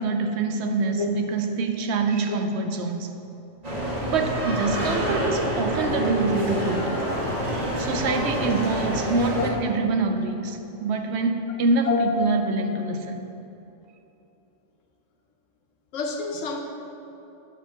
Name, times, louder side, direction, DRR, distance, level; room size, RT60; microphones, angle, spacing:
voice 1, 0.0-3.1 4.1-6.9 7.8-13.2, right 3 dB, 65° right, 5 dB, 0.9 m, -25 dB
sound 1, 3.6-9.5, equal, 35° right, 1.5 m, -27 dB
voice 2, 15.9-16.6, left 6 dB, 85° left, 3 dB, 1.2 m, -28 dB
10.0 x 3.6 x 7.0 m, 2.9 s
omnidirectional pair, 1.3 m